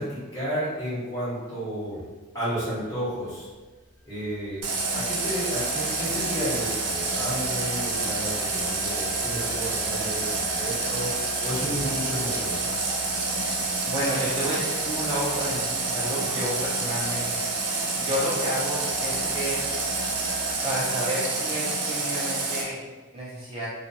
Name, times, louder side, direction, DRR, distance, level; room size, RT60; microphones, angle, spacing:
voice 1, 0.0-2.0 2.3-3.5 4.0-4.6 4.9-11.1 11.4-12.6, equal, 15° left, -12 dB, 1.2 m, -32 dB
sound 1, 2.7-20.5, left 1 dB, 70° left, 0.9 m, -47 dB
Water tap faucet, 4.6-22.6, right 3 dB, 80° right, 0.5 m, -28 dB
voice 2, 13.9-17.2 18.0-19.6 20.6-22.8 23.1-23.7, equal, 25° right, -8 dB, 0.4 m, -30 dB
2.5 x 2.1 x 2.8 m, 1.3 s
head